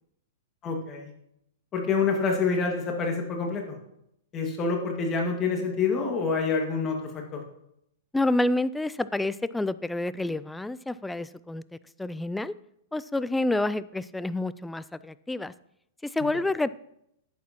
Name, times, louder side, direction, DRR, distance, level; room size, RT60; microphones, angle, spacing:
voice 1, 0.6-1.1 1.7-3.8 4.3-7.4, left 4 dB, 30° left, 2 dB, 1.9 m, -27 dB
voice 2, 8.1-11.6 12.0-12.5 12.9-15.5 16.0-16.7, left 2 dB, 5° left, 17 dB, 0.3 m, -28 dB
11.0 x 8.5 x 2.9 m, 0.77 s
hypercardioid pair, 120°, 0 cm